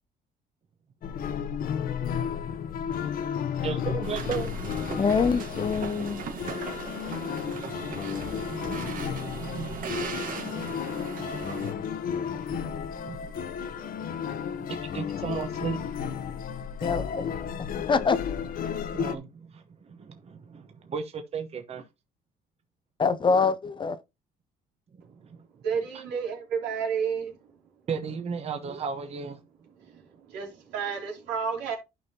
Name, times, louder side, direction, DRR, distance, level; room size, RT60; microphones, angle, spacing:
sound 1, 1.0-19.2, left 8 dB, 60° left, 0.9 m, -33 dB
voice 1, 3.6-4.5 7.4-10.9 11.6-11.9 12.3-13.4 14.1-15.8 18.9-19.3 19.5-21.8 27.9-29.4, right 6 dB, 40° right, 1.0 m, -36 dB
sound 2, 4.0-11.7, right 6 dB, 55° right, 1.6 m, -38 dB
voice 2, 5.0-6.2 16.8-17.3 17.6-18.2 23.0-24.0, left 5 dB, 30° left, 0.6 m, -25 dB
voice 3, 25.6-27.4 29.9-31.8, right 6 dB, 85° right, 3.1 m, -31 dB
11.5 x 5.4 x 2.8 m
cardioid pair, 110°, 17 cm